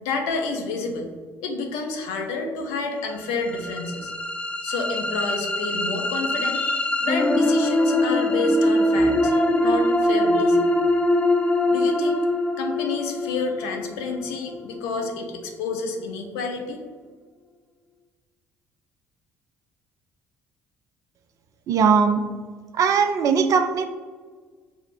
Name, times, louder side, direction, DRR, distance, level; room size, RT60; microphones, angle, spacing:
voice 1, 0.0-1.1 1.4-4.1 4.6-10.7 11.7-12.2 12.6-16.8, left 3 dB, 70° left, 4 dB, 0.6 m, -29 dB
sound 1, 3.2-15.3, left 1 dB, 15° left, 0.4 m, -22 dB
voice 2, 21.7-22.2 22.7-23.9, right 6 dB, 50° right, 9 dB, 0.4 m, -19 dB
5.6 x 2.0 x 4.1 m, 1.5 s
figure-of-eight pair, 50°, 7 cm